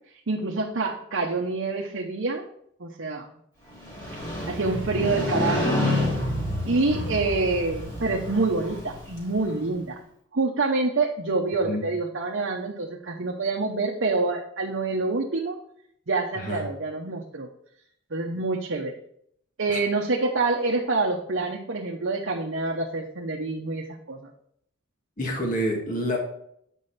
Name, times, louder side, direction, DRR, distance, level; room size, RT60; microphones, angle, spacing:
voice 1, 0.3-2.4 2.8-3.3 4.5-5.8 6.7-10.0 10.3-15.6 16.1-17.5 18.1-19.0 19.6-24.3, right 3 dB, 65° right, -1 dB, 0.8 m, -27 dB
Motorcycle, 3.7-9.7, left 1 dB, 20° left, 2.6 m, -29 dB
voice 2, 25.2-26.2, equal, 40° left, 1 dB, 1.7 m, -27 dB
8.3 x 5.5 x 4.1 m, 0.71 s
head